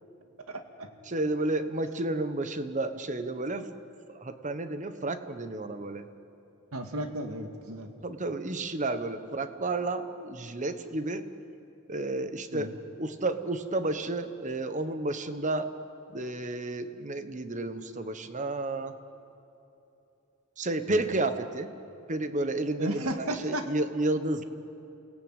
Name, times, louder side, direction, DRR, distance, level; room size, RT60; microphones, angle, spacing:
voice 1, 0.5-0.9 6.7-7.9 12.5-12.7 22.8-23.7, right 1 dB, 85° right, 6 dB, 2.2 m, -34 dB
voice 2, 1.1-3.7 4.1-6.0 8.0-11.2 11.9-12.7 13.0-15.7 16.1-18.9 20.6-21.7 22.1-24.4, right 2 dB, 35° right, 10 dB, 1.2 m, -31 dB
29.0 x 18.0 x 9.1 m, 2.9 s
head